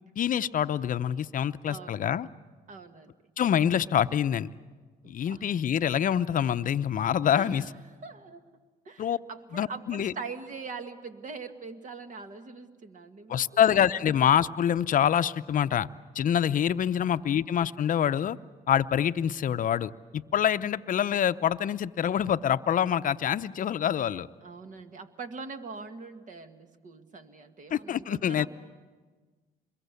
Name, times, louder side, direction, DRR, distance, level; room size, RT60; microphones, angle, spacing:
voice 1, 0.2-2.3 3.4-4.5 5.1-7.6 9.0-9.2 9.5-10.1 13.3-15.9 16.1-18.4 18.7-24.3 27.7-28.5, left 9 dB, 50° left, 13 dB, 0.7 m, -26 dB
voice 2, 1.6-2.1 2.7-3.1 5.0-5.5 7.3-7.7 8.0-8.4 8.9-13.4 16.5-16.6 24.4-28.5, right 4 dB, 45° right, 7 dB, 2.0 m, -42 dB
26.5 x 22.0 x 8.3 m, 1.4 s
supercardioid pair, 70°, 18 cm